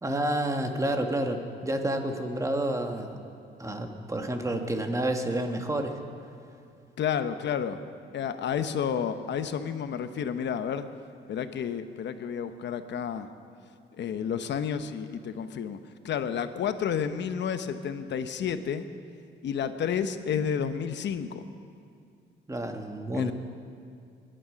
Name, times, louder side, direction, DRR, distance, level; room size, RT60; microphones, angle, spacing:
voice 1, 0.0-3.1 3.6-6.0 22.5-23.3, right 1 dB, 15° right, 4 dB, 1.6 m, -29 dB
voice 2, 7.0-7.8 8.1-10.9 11.3-13.3 14.0-15.8 16.0-18.9 19.4-21.5 23.1-23.3, left 7 dB, 65° left, 10 dB, 0.9 m, -30 dB
23.5 x 10.0 x 5.2 m, 2.4 s
cardioid pair, 90°, 20 cm